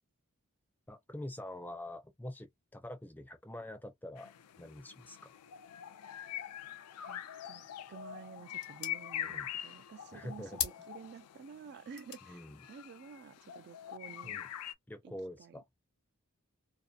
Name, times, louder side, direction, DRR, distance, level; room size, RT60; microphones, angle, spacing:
voice 1, 0.9-5.3 9.2-9.5 10.1-10.6 12.3-12.6 14.2-14.5 14.9-15.8, left 1 dB, 10° left, 0.5 m, -46 dB
sound 1, 4.2-14.7, left 10 dB, 85° left, 0.4 m, -44 dB
voice 2, 7.0-14.4 15.0-15.5, right 6 dB, 50° right, 0.3 m, -51 dB
sound 2, 10.5-14.4, left 9 dB, 65° left, 0.8 m, -46 dB
2.6 x 2.4 x 2.4 m
head